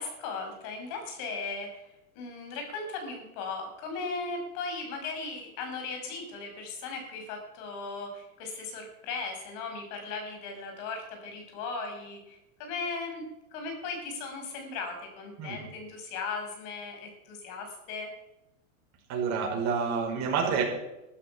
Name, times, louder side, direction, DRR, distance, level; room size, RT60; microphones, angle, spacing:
voice 1, 0.0-13.2 13.5-18.1, left 4 dB, 50° left, 3 dB, 6.1 m, -37 dB
voice 2, 19.1-20.6, right 6 dB, 40° right, 0 dB, 5.9 m, -28 dB
14.0 x 13.5 x 5.9 m, 0.95 s
hypercardioid pair, 125°, 43 cm